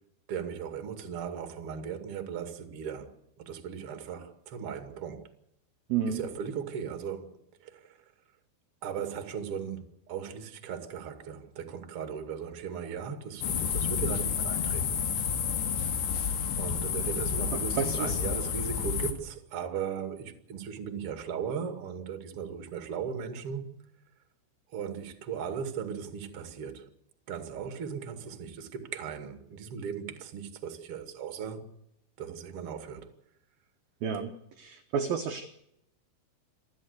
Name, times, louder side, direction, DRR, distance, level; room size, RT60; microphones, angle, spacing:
voice 1, 0.3-5.3 6.1-8.0 8.8-15.0 16.6-23.7 24.7-26.9 27.3-31.6 32.2-33.1, right 7 dB, 40° right, 2.2 m, -37 dB
voice 2, 5.9-6.2 17.8-18.2 34.0-34.3 34.6-35.5, right 7 dB, 70° right, 2.3 m, -30 dB
sound 1, 13.4-19.1, left 7 dB, 65° left, 3.8 m, -30 dB
28.5 x 12.0 x 8.3 m
omnidirectional pair, 5.8 m